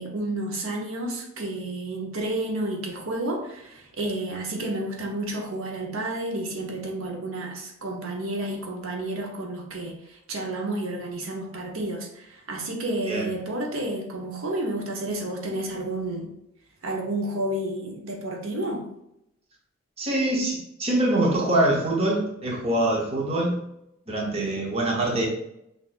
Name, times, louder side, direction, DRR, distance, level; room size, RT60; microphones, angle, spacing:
voice 1, 0.0-16.3 16.8-18.8, right 1 dB, 85° right, 1 dB, 0.9 m, -31 dB
voice 2, 20.0-23.6 24.1-25.3, right 1 dB, 30° right, -1 dB, 0.8 m, -24 dB
5.9 x 2.6 x 2.5 m, 0.81 s
head